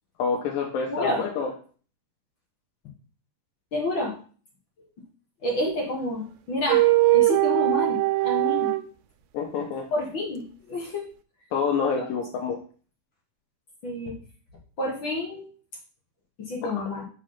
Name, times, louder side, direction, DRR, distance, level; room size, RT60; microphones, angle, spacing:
voice 1, 0.2-1.5 9.3-9.9 11.5-12.6 16.6-16.7, left 5 dB, 75° left, 3 dB, 2.4 m, -27 dB
voice 2, 0.9-1.2 3.7-4.1 5.4-6.9 7.1-8.8 9.9-11.0 12.0-12.1 13.8-14.1 14.8-15.5 16.4-17.0, left 2 dB, 50° left, -1 dB, 1.5 m, -29 dB
sound 1, 5.7-5.8 6.7-8.8, right 19 dB, 80° right, 2.4 m, -21 dB
6.2 x 5.5 x 5.7 m, 0.41 s
omnidirectional pair, 4.3 m